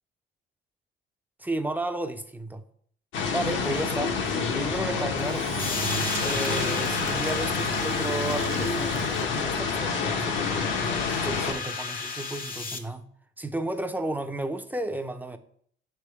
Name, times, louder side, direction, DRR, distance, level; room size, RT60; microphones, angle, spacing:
voice 1, 1.4-2.6 3.3-4.2 4.5-5.5 6.2-13.1 13.4-15.4, right 1 dB, 10° right, 0.5 m, -33 dB
sound 1, 3.1-11.5, left 5 dB, 75° left, 1.0 m, -28 dB
Engine / Drill, 5.2-9.7, right 11 dB, 80° right, 0.6 m, -37 dB
sound 2, 5.6-12.8, left 5 dB, 45° left, 0.9 m, -33 dB
6.7 x 3.5 x 4.7 m
cardioid pair, 90°, 20 cm